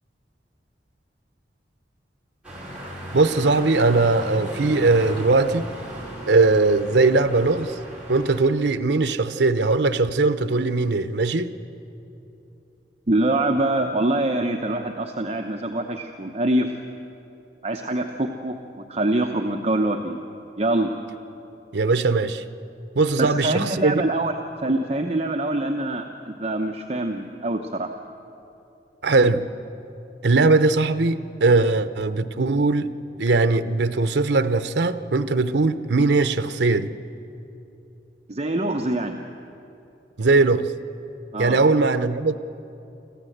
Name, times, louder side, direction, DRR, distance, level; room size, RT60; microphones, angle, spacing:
sound 1, 2.4-8.4, equal, 5° right, 4.7 m, -37 dB
voice 1, 3.1-5.7 6.3-7.7 8.1-11.5 21.7-22.4 22.9-24.0 29.0-29.4 30.2-32.9 33.2-36.9 40.2-40.6 41.4-42.4, right 3 dB, 75° right, 11 dB, 0.8 m, -20 dB
voice 2, 13.1-16.7 17.6-20.2 20.6-20.9 23.2-27.9 38.3-39.2 41.3-41.6, right 1 dB, 35° right, 3 dB, 0.9 m, -24 dB
25.0 x 15.0 x 7.9 m, 2.8 s
head